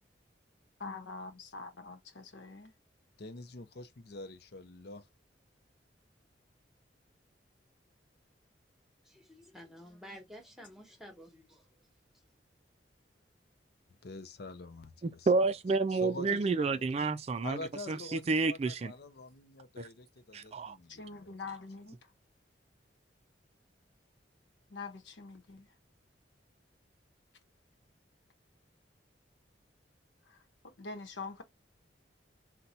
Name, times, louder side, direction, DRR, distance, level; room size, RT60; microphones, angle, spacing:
voice 1, 0.8-2.7 20.9-22.0 24.7-25.7 30.3-30.4 30.6-31.4, left 4 dB, 80° left, 0.9 m, -44 dB
voice 2, 3.2-5.0 14.0-15.3 15.9-16.8 17.4-21.4, left 2 dB, 60° left, 0.6 m, -45 dB
voice 3, 9.0-11.9, equal, ahead, 1.2 m, -52 dB
voice 4, 15.0-17.6 17.9-18.9 19.8-19.9 20.3-20.8, right 3 dB, 35° right, 0.3 m, -30 dB
4.0 x 2.2 x 4.2 m
head